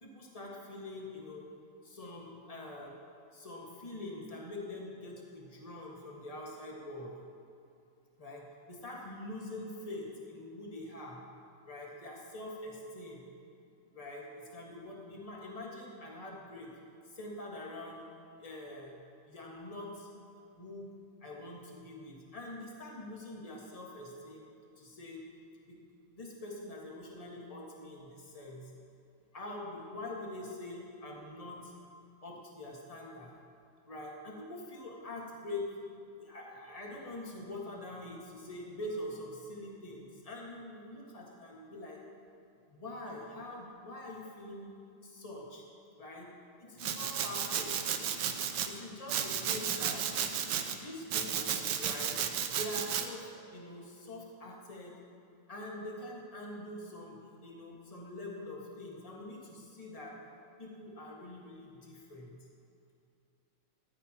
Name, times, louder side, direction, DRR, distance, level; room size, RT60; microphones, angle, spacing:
voice 1, 0.0-1.5 1.8-2.9 3.3-7.2 8.2-11.2 11.6-13.2 13.9-16.7 17.1-18.0 18.4-18.9 19.2-20.1 20.4-24.5 24.8-25.2 25.6-25.8 26.1-28.7 29.3-31.7 32.2-33.3 33.9-35.7 36.2-42.0 42.7-44.7 45.0-45.6 46.0-46.3 46.6-47.8 48.6-50.0 50.7-52.2 52.5-55.0 55.5-60.1 60.6-62.4, left 1 dB, 20° left, -3 dB, 1.7 m, -44 dB
Domestic sounds home sounds, 46.8-48.7 49.1-50.7 51.1-53.1, right 8 dB, 65° right, 1.2 m, -33 dB
14.5 x 13.5 x 3.0 m, 2.6 s
omnidirectional pair, 2.4 m